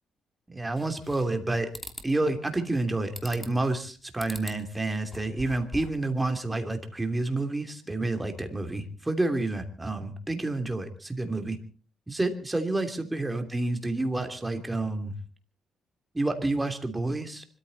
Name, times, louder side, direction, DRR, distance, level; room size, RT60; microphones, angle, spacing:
voice 1, 0.5-1.7 2.0-11.6 12.1-15.1 16.1-17.5, right 2 dB, 15° right, 6 dB, 3.1 m, -29 dB
sound 1, 0.8-1.4 1.7-2.1 3.2-3.7 4.2-4.6 5.0-6.0, left 1 dB, 5° left, 2.9 m, -42 dB
25.0 x 14.0 x 4.2 m, 0.39 s
cardioid pair, 90°, 0 cm